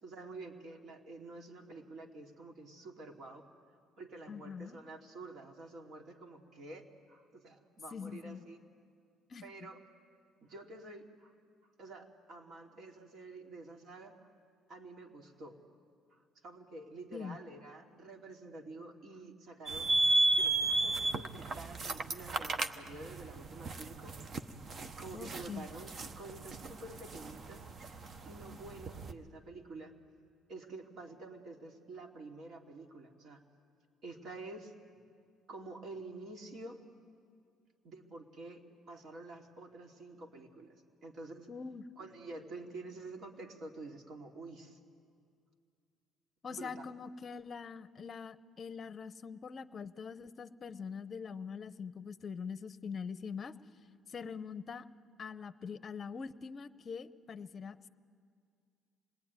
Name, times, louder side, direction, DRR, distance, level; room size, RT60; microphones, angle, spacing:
voice 1, 0.0-3.4 4.0-8.6 9.4-9.8 10.4-11.3 11.8-14.1 14.7-15.6 16.1-19.9 20.3-24.2 25.0-27.6 28.2-29.9 30.5-33.4 34.0-34.7 35.5-36.8 37.8-41.5 42.0-44.8 46.5-46.9, right 2 dB, 55° right, 2 dB, 2.8 m, -49 dB
voice 2, 4.3-4.8 7.9-8.4 9.3-9.4 17.1-17.4 25.1-25.7 41.5-41.9 46.4-53.5 54.1-54.8 55.2-57.9, left 6 dB, 35° left, 13 dB, 0.8 m, -43 dB
sound 1, 19.7-29.1, right 2 dB, 40° right, 1.0 m, -34 dB
26.5 x 20.0 x 9.7 m, 2.2 s
cardioid pair, 120°, 0 cm